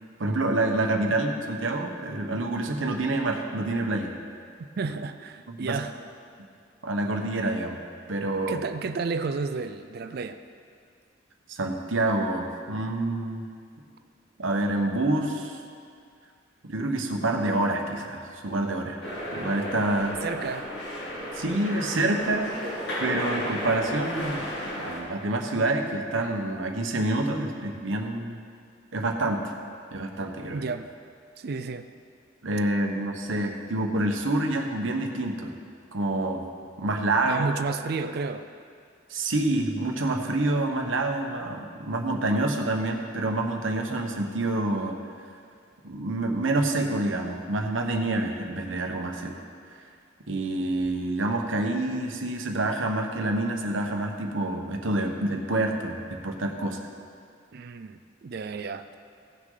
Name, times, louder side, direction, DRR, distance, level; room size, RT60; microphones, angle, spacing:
voice 1, 0.2-4.1 5.5-5.8 6.8-7.8 8.1-8.6 11.5-13.5 14.4-15.6 16.6-19.0 19.3-20.1 21.3-22.5 23.0-28.4 28.9-29.4 29.9-30.7 32.4-35.6 35.9-36.4 36.8-37.5 39.1-45.0 45.8-49.3 49.7-49.8 50.3-56.8, right 2 dB, 90° right, 3 dB, 1.0 m, -27 dB
voice 2, 4.8-5.9 8.5-10.4 20.2-20.7 30.5-30.9 31.4-31.9 37.2-38.5 57.5-59.0, right 4 dB, 55° right, 9 dB, 0.4 m, -32 dB
sound 1, 19.0-25.0, equal, 60° left, 2.5 m, -33 dB
17.0 x 6.2 x 3.9 m, 2.2 s
head